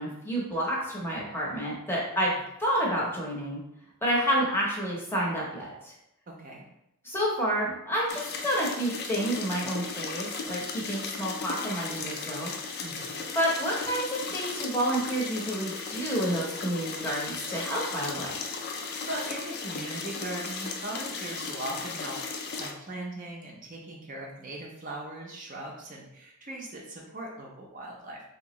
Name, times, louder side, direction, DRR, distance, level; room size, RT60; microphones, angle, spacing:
voice 1, 0.0-2.3 2.6-3.6 4.0-5.9 7.0-12.5 13.3-18.3, equal, 10° left, -4 dB, 0.7 m, -29 dB
voice 2, 6.3-6.6 12.8-13.3 19.1-28.2, right 1 dB, 40° right, -2 dB, 0.6 m, -39 dB
sound 1, 8.1-22.7, left 4 dB, 50° left, 0.4 m, -36 dB
3.6 x 2.9 x 3.0 m, 0.81 s
head